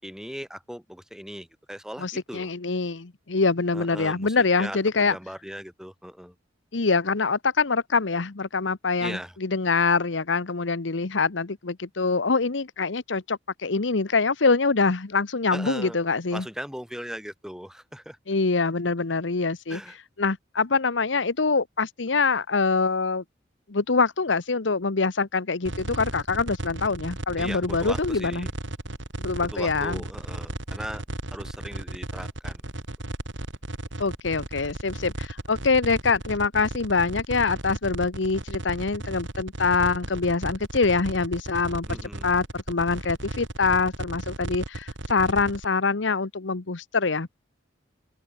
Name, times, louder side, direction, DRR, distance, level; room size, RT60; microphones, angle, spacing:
voice 1, 0.0-2.5 3.7-6.3 9.0-9.4 15.5-16.0 16.3-18.2 19.7-20.0 27.4-28.5 29.4-31.0 31.3-32.6 41.9-42.3, equal, 5° right, 6.1 m, -38 dB
voice 2, 2.0-5.1 6.7-16.4 18.3-19.8 20.2-23.2 23.7-28.5 29.2-30.0 34.0-47.3, left 4 dB, 80° left, 1.0 m, -24 dB
sound 1, 25.6-45.6, right 1 dB, 85° right, 4.1 m, -35 dB
open air
head